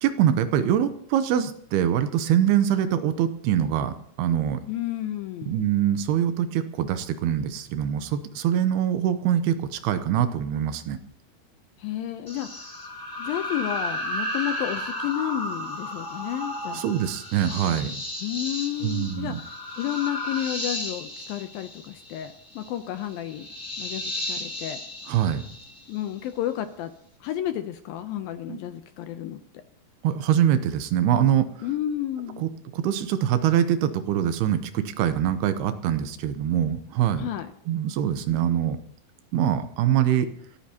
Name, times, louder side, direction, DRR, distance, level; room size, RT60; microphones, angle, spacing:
voice 1, 0.0-4.6 5.5-11.0 16.7-18.0 18.8-19.4 25.1-25.4 28.5-28.6 30.0-31.5 32.4-37.3 37.7-38.8 39.3-40.3, right 10 dB, 80° right, 10 dB, 2.7 m, -24 dB
voice 2, 4.7-5.6 11.8-12.7 13.2-16.9 18.2-19.5 19.8-23.5 23.8-24.8 25.9-26.9 27.2-29.4 31.6-32.5 37.2-37.5, left 12 dB, 75° left, 8 dB, 2.2 m, -31 dB
sound 1, 12.3-26.1, left 1 dB, 10° left, 1.3 m, -34 dB
28.0 x 14.0 x 2.9 m, 0.64 s
omnidirectional pair, 4.8 m